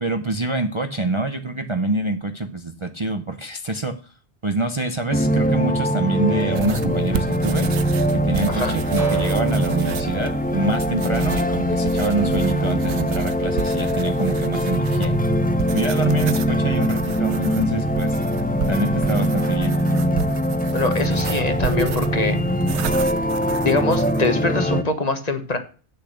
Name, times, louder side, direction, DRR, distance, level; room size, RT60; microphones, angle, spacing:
voice 1, 0.0-4.1 4.4-7.7 8.1-15.2 15.7-18.2 18.7-19.7, right 2 dB, 30° right, 7 dB, 0.7 m, -26 dB
sound 1, 5.1-24.8, equal, 10° left, 0.7 m, -22 dB
sound 2, 6.5-24.3, right 8 dB, 85° right, 1.0 m, -32 dB
sound 3, 9.0-11.8, right 1 dB, 15° right, 1.2 m, -37 dB
voice 2, 20.7-22.4 23.6-25.6, left 3 dB, 35° left, 8 dB, 1.3 m, -23 dB
8.1 x 6.9 x 6.4 m, 0.39 s
omnidirectional pair, 1.1 m